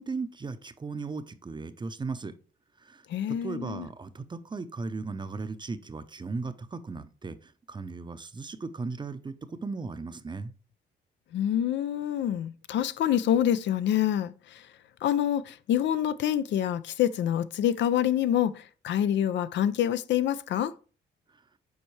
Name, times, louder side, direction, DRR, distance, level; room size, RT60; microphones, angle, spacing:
voice 1, 0.0-2.3 2.8-3.0 3.4-9.3 9.6-10.5, right 4 dB, 25° right, 0.6 m, -36 dB
voice 2, 3.1-3.9 11.3-14.3 15.0-20.7, left 10 dB, 65° left, 0.4 m, -26 dB
7.1 x 4.4 x 3.2 m
cardioid pair, 90°, 20 cm